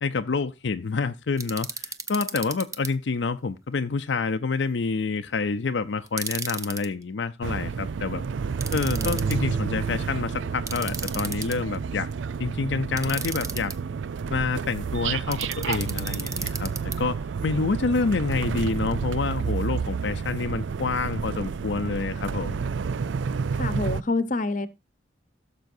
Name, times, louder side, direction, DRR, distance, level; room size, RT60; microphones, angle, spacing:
voice 1, 0.0-8.2 8.7-12.1 12.4-13.7 14.3-16.7 17.0-22.6, left 4 dB, 75° left, 0.5 m, -28 dB
sound 1, 1.4-2.9 6.1-6.9 8.6-9.4 10.7-11.8 13.0-13.7 15.3-17.0, right 5 dB, 15° right, 0.6 m, -34 dB
sound 2, 7.4-24.0, right 6 dB, 85° right, 0.4 m, -30 dB
Harp, 8.9-18.1 19.0-19.1 19.5-19.6, equal, 45° right, 4.3 m, -46 dB
voice 2, 23.6-24.7, left 3 dB, 45° left, 0.9 m, -26 dB
16.5 x 6.9 x 2.6 m
head